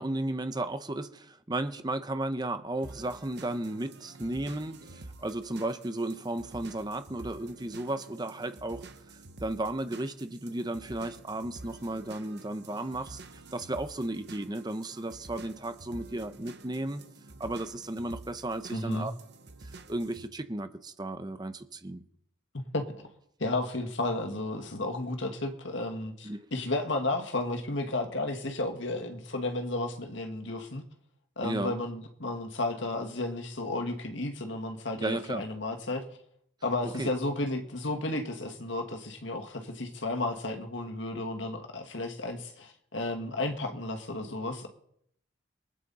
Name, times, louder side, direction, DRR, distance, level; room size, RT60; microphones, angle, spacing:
voice 1, 0.0-8.8 9.4-17.0 17.4-19.1 19.6-22.0 26.2-26.5 31.4-31.7 35.0-35.4 36.8-37.1, right 1 dB, 20° right, 10 dB, 0.8 m, -34 dB
sound 1, 2.8-20.3, right 2 dB, 55° right, 1.1 m, -49 dB
voice 2, 18.7-19.1 22.7-22.8 23.4-30.8 31.4-36.0 36.6-44.7, left 2 dB, 65° left, 4 dB, 1.9 m, -33 dB
23.5 x 9.4 x 4.2 m, 0.72 s
head